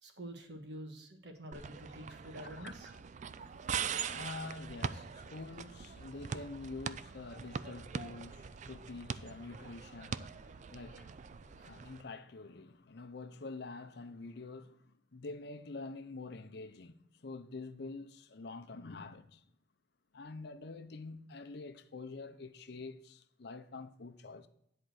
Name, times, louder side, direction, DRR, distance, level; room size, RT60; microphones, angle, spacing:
voice 1, 0.0-2.9, right 1 dB, 65° right, 1.5 m, -47 dB
sound 1, 1.5-12.0, right 6 dB, 40° right, 0.3 m, -42 dB
voice 2, 3.3-19.4 20.1-24.5, left 3 dB, 60° left, 0.7 m, -47 dB
10.5 x 4.4 x 6.6 m
head